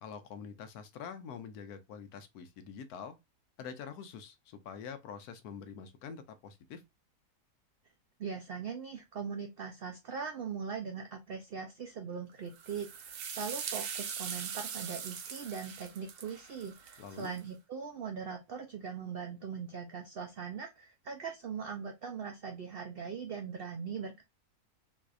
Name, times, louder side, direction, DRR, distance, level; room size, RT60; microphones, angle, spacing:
voice 1, 0.0-3.2 3.6-6.8 17.0-17.3, left 6 dB, 75° left, 1.1 m, -45 dB
voice 2, 8.2-24.2, right 6 dB, 90° right, 0.5 m, -40 dB
sound 1, 12.6-17.4, right 7 dB, 65° right, 0.9 m, -41 dB
4.0 x 2.6 x 2.4 m
omnidirectional pair, 1.7 m